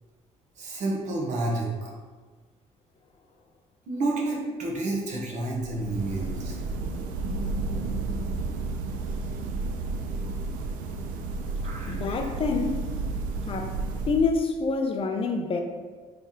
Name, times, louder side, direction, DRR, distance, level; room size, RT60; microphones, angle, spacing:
voice 1, 0.6-1.7 3.9-6.6 11.6-12.0, right 2 dB, 60° right, 0.9 m, -29 dB
sound 1, 5.5-14.6, right 3 dB, 80° right, 0.4 m, -32 dB
voice 2, 11.9-12.9 13.5-13.8 14.1-15.6, left 4 dB, 40° left, 0.5 m, -26 dB
3.3 x 2.9 x 3.6 m
cardioid pair, 95°, 14 cm